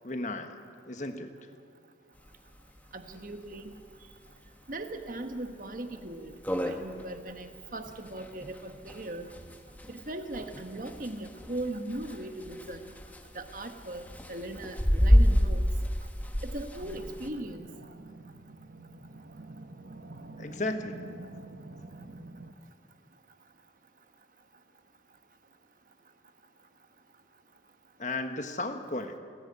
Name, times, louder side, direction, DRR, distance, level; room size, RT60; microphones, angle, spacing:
voice 1, 0.0-0.6 0.9-1.3 20.4-21.0 28.0-29.2, left 2 dB, 40° left, 7 dB, 1.3 m, -34 dB
sound 1, 2.3-2.4 2.6-2.7 3.1-3.2 3.7-4.0 4.5-4.6 5.1-5.2 5.5-5.6 6.0-6.1 6.3-17.3, equal, 10° left, 1.2 m, -28 dB
voice 2, 2.9-3.7 4.7-6.3 6.7-9.3 9.9-12.8 13.3-14.0 14.3-15.6 16.4-17.7, right 1 dB, 50° right, 7 dB, 1.3 m, -38 dB
sound 2, 16.8-22.5, right 2 dB, 70° right, 1.1 m, -47 dB
29.5 x 11.0 x 8.6 m, 2.3 s
head